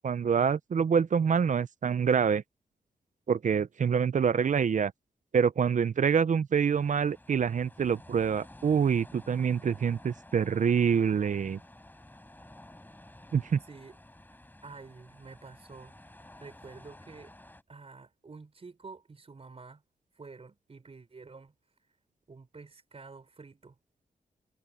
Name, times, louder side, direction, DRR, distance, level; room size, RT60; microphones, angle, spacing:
voice 1, 0.0-2.4 3.3-4.9 5.3-11.6 13.3-13.6, right 7 dB, 55° right, 0.7 m, -26 dB
sound 1, 6.7-17.6, left 1 dB, 10° left, 6.5 m, -53 dB
voice 2, 13.7-14.0 14.6-15.9 16.4-17.3 17.7-19.8 20.1-21.5 22.3-23.8, right 4 dB, 40° right, 4.5 m, -49 dB
wide cardioid pair, 95°, 15 cm